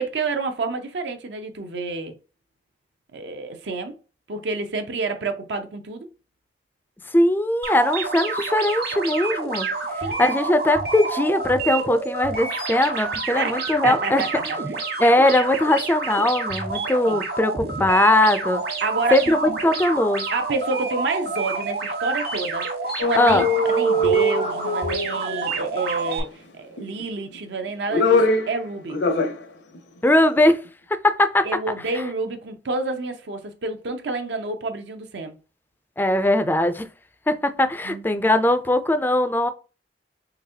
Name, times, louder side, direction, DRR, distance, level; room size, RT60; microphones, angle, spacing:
voice 1, 0.0-2.2 3.1-4.0 4.3-6.1 10.0-10.2 13.3-14.8 17.1-17.2 18.8-19.4 20.3-22.7 23.0-29.0 31.4-35.4 37.8-38.2, right 3 dB, 75° right, 0.6 m, -29 dB
voice 2, 7.1-9.7 10.2-14.2 15.0-18.6 19.1-20.3 23.2-23.4 30.0-30.6 31.0-31.5 36.0-36.9 37.3-39.5, left 1 dB, 10° left, 0.3 m, -20 dB
sound 1, 7.6-26.2, right 3 dB, 55° right, 1.2 m, -28 dB
sound 2, 23.0-25.5 26.8-27.4 27.7-28.6 28.9-29.4 29.7-29.8, left 1 dB, 85° left, 0.8 m, -22 dB
3.9 x 3.4 x 2.7 m
head